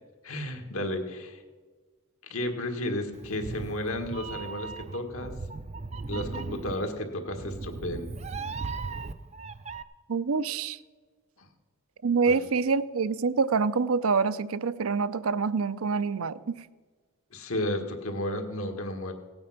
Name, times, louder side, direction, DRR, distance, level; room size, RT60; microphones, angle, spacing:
voice 1, 0.2-1.4 2.2-5.3 6.1-8.1 11.4-11.5 12.3-12.4 17.3-19.1, left 1 dB, 75° left, 5 dB, 1.7 m, -33 dB
Meow, 3.1-9.8, right 4 dB, 30° right, 0.4 m, -37 dB
voice 2, 10.1-10.8 12.0-16.6, right 5 dB, 80° right, 14 dB, 0.5 m, -26 dB
17.0 x 8.8 x 5.9 m, 1.4 s
head